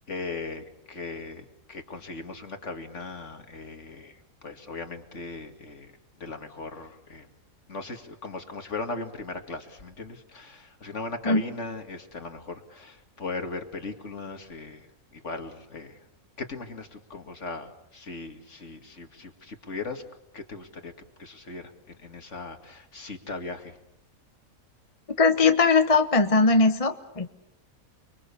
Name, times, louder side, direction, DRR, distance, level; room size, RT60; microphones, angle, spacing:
voice 1, 0.1-5.9 6.2-7.3 7.7-16.0 16.4-20.0 20.3-20.9 21.2-23.8, left 3 dB, 55° left, 6 dB, 2.5 m, -38 dB
voice 2, 25.2-27.3, left 4 dB, 25° left, 7 dB, 1.2 m, -20 dB
30.0 x 22.5 x 7.1 m, 0.83 s
omnidirectional pair, 1.5 m